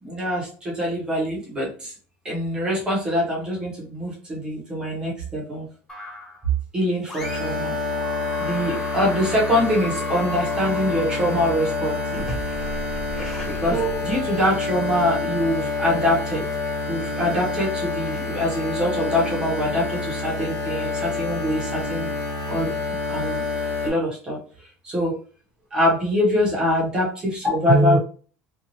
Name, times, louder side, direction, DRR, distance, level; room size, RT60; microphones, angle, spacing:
voice 1, 0.0-1.9 2.2-5.7 6.7-7.8 8.4-12.3 12.6-12.7 13.5-16.5 16.9-22.1 22.5-25.2 25.7-28.0, equal, 20° right, -3 dB, 0.9 m, -24 dB
sound 1, 5.9-6.5 7.0-7.7 8.0-14.4, left 1 dB, 10° left, 0.8 m, -36 dB
sound 2, 7.2-23.9, left 3 dB, 40° left, 1.3 m, -28 dB
2.8 x 2.3 x 2.8 m, 0.40 s
cardioid pair, 165°, 4 cm